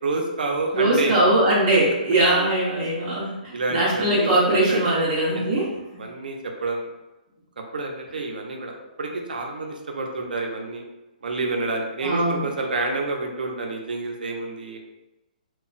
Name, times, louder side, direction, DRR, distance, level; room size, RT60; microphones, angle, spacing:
voice 1, 0.0-1.2 3.5-4.3 4.6-4.9 5.3-5.4 6.0-6.9 7.6-10.8 11.2-14.8, right 3 dB, 90° right, 2 dB, 0.5 m, -28 dB
voice 2, 0.7-5.7 12.0-12.5, right 1 dB, 20° right, -7 dB, 0.7 m, -21 dB
2.2 x 2.0 x 3.8 m, 1.0 s
hypercardioid pair, 180°, 5 cm